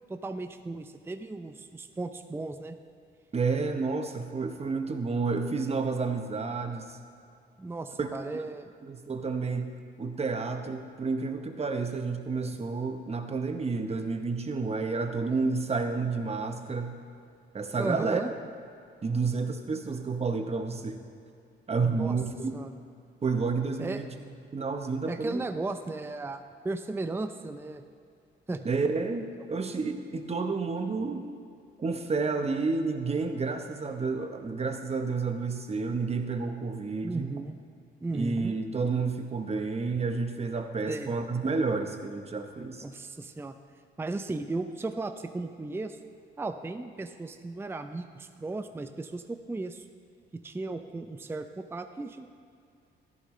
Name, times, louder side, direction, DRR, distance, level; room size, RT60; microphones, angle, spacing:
voice 1, 0.1-2.8 7.6-8.7 17.8-18.3 21.8-22.2 22.5-22.8 23.8-24.0 25.1-27.8 28.5-28.7 37.0-37.6 38.0-38.5 40.9-41.1 42.8-43.6 44.0-46.0 46.4-49.8 50.3-52.3, right 2 dB, 10° right, 8 dB, 0.5 m, -35 dB
voice 2, 3.3-7.0 8.0-8.1 8.9-9.7 10.0-17.0 17.5-18.2 19.0-21.0 21.7-22.5 23.2-24.1 24.5-25.4 28.6-31.3 31.8-37.3 38.1-42.8, right 4 dB, 30° right, 6 dB, 1.0 m, -30 dB
13.5 x 11.5 x 3.2 m, 2.5 s
cardioid pair, 90°, 20 cm